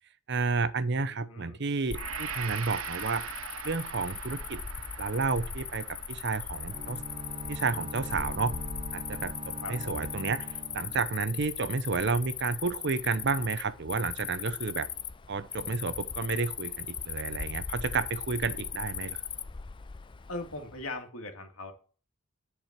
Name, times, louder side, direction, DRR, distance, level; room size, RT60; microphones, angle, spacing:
voice 1, 0.3-3.3 3.6-4.6 5.0-7.0 7.5-8.6 8.9-14.9 15.3-19.2, right 4 dB, 55° right, 0.8 m, -31 dB
voice 2, 0.9-1.6 9.6-10.1 20.3-21.7, left 2 dB, 85° left, 2.3 m, -40 dB
Cricket, 1.9-20.8, left 7 dB, 25° left, 0.4 m, -39 dB
Gong, 1.9-10.0, right 8 dB, 85° right, 0.7 m, -43 dB
sound 1, 6.7-11.7, right 1 dB, 30° right, 1.0 m, -42 dB
10.5 x 4.9 x 7.4 m
head